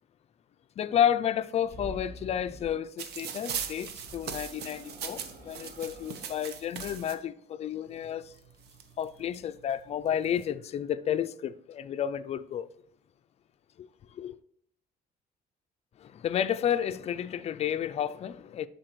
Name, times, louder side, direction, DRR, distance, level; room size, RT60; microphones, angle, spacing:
voice 1, 0.8-8.3 9.0-12.7 13.8-14.4 16.0-18.7, left 9 dB, 40° left, 0.4 m, -31 dB
sound 1, 1.5-2.8 3.7-6.3, equal, 60° right, 1.9 m, -47 dB
sound 2, 3.0-7.1 8.1-8.2 8.4-9.4 10.1-10.4, right 7 dB, 85° right, 0.8 m, -39 dB
11.5 x 4.1 x 3.1 m
cardioid pair, 140°, 17 cm